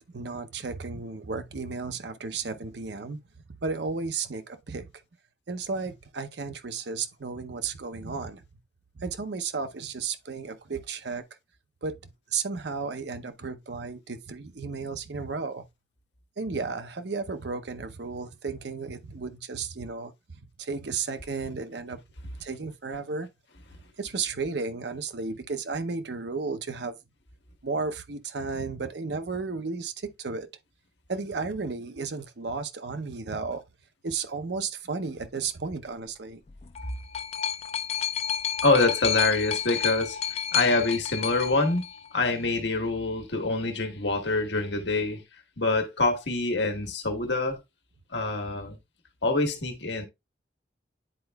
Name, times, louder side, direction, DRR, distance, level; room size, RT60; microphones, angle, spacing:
voice 1, 0.1-3.2 3.6-4.9 5.5-8.4 9.0-11.2 11.8-15.6 16.4-22.0 22.4-23.3 24.0-26.9 27.6-30.5 31.1-33.6 34.0-36.4, right 4 dB, 75° right, 0.7 m, -33 dB
sound 1, 36.5-42.5 43.4-43.5, left 8 dB, 35° left, 0.3 m, -31 dB
voice 2, 38.6-41.8 42.1-45.2 45.6-47.6 48.1-48.8 49.2-50.0, left 3 dB, 80° left, 1.3 m, -25 dB
10.0 x 4.4 x 2.3 m
head